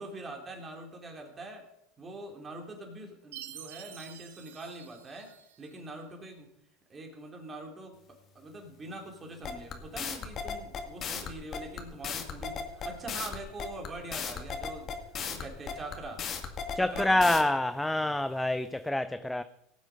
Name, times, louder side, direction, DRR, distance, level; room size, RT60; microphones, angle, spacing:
voice 1, 0.0-1.6 2.0-5.3 5.6-6.5 6.9-8.0 8.3-14.9 15.2-16.2 16.8-17.3 18.0-18.1, right 2 dB, 25° right, 3.3 m, -43 dB
Chime, 3.3-5.8, right 11 dB, 90° right, 1.1 m, -48 dB
sound 1, 9.4-17.4, left 6 dB, 40° left, 1.9 m, -35 dB
voice 2, 16.8-19.4, left 1 dB, 5° left, 0.5 m, -27 dB
18.0 x 7.4 x 5.2 m
supercardioid pair, 105°, 0 cm